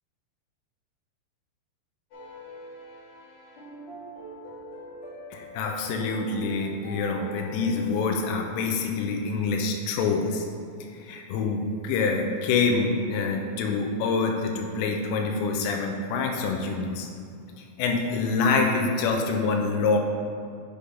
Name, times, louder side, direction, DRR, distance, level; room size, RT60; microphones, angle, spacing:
sound 1, 2.1-7.9, equal, 50° left, 2.3 m, -42 dB
voice 1, 5.3-10.5 11.0-17.1 17.8-20.0, left 4 dB, 80° left, 1 dB, 2.6 m, -26 dB
7.0 x 5.1 x 5.1 m, 2.3 s
omnidirectional pair, 5.6 m